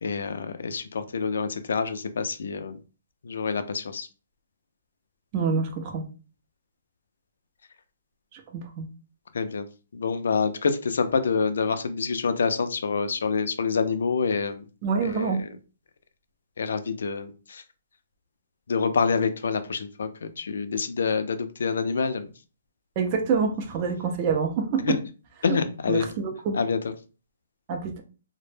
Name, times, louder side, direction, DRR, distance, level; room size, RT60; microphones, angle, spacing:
voice 1, 0.0-2.8 3.2-4.1 9.3-9.6 9.9-14.7 15.0-15.3 16.6-17.6 18.7-22.3 24.8-25.0 25.4-26.0 26.5-26.8, left 5 dB, 70° left, 10 dB, 0.4 m, -27 dB
voice 2, 5.3-6.0 8.3-8.9 14.8-15.4 23.0-25.0 25.9-26.6 27.7-28.0, right 5 dB, 25° right, 3 dB, 0.4 m, -26 dB
2.0 x 2.0 x 3.1 m, 0.35 s
hypercardioid pair, 170°, 0 cm